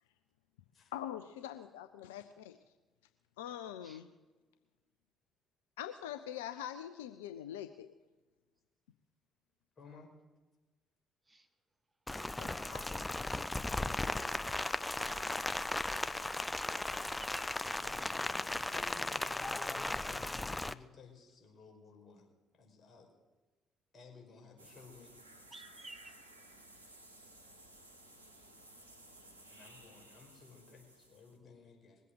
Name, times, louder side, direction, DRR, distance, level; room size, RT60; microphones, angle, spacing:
voice 1, 0.9-2.6 3.4-4.1 5.8-7.9 12.4-12.8, left 11 dB, 75° left, 10 dB, 0.5 m, -43 dB
voice 2, 9.8-10.1 17.8-22.2 22.5-23.1 23.9-25.1 29.5-32.0, left 4 dB, 40° left, 1 dB, 5.3 m, -56 dB
Rain, 12.1-20.7, left 2 dB, 15° left, 0.6 m, -36 dB
voice 3, 12.2-13.8 15.0-15.3 15.6-16.2 16.9-18.3 25.5-26.1, right 2 dB, 20° right, 10 dB, 1.2 m, -55 dB
sound 1, 24.6-31.4, right 1 dB, 85° right, 1.1 m, -57 dB
21.0 x 8.3 x 7.9 m, 1.2 s
figure-of-eight pair, 45°, 0 cm